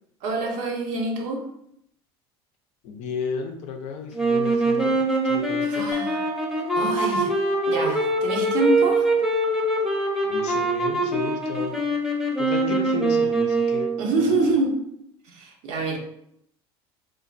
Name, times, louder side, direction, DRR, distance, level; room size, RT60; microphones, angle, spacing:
voice 1, 0.2-1.4 5.6-6.2 6.7-7.3 7.6-9.1 14.0-14.8 15.2-16.0, right 2 dB, 60° right, 2 dB, 0.7 m, -26 dB
voice 2, 2.8-6.0 10.2-11.8 12.4-14.6, left 5 dB, 55° left, 4 dB, 0.5 m, -33 dB
sound 1, 4.1-14.2, right 2 dB, ahead, 0.7 m, -23 dB
sound 2, 5.9-10.8, right 2 dB, 30° right, 0.4 m, -43 dB
3.3 x 2.1 x 2.5 m, 0.74 s
hypercardioid pair, 85°, 13 cm